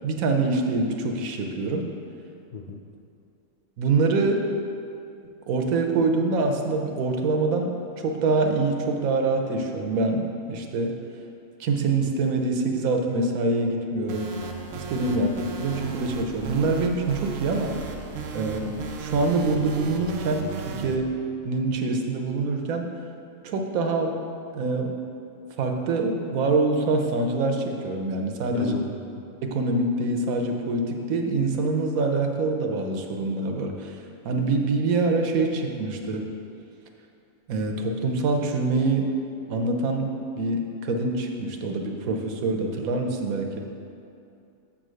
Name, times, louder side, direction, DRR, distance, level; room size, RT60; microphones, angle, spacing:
voice 1, 0.0-1.9 3.8-4.5 5.5-10.9 11.6-14.3 14.7-15.3 15.6-17.7 18.3-21.1 21.4-22.9 23.4-24.2 24.5-25.0 25.6-28.8 29.4-34.0 34.2-36.2 37.5-39.1 39.5-43.6, right 3 dB, 90° right, 3 dB, 1.2 m, -25 dB
sound 1, 14.1-21.0, right 5 dB, 60° right, 0.7 m, -35 dB
voice 2, 28.5-28.9, left 6 dB, 75° left, 0 dB, 0.4 m, -34 dB
7.0 x 3.8 x 6.2 m, 2.6 s
omnidirectional pair, 1.4 m